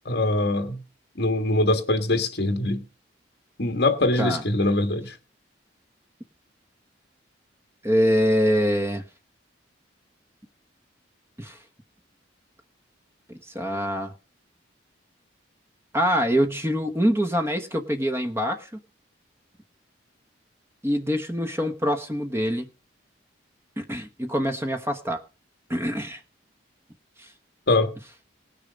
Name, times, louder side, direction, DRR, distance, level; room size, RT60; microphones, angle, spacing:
voice 1, 0.0-0.8 1.1-2.8 3.6-5.2 27.7-27.9, left 2 dB, 55° left, 1.6 m, -23 dB
voice 2, 7.8-9.0 11.4-11.6 13.5-14.1 15.9-18.8 20.8-22.7 23.8-25.2 25.7-26.2 27.2-27.3, equal, 15° right, 1.1 m, -24 dB
18.5 x 6.7 x 5.1 m
head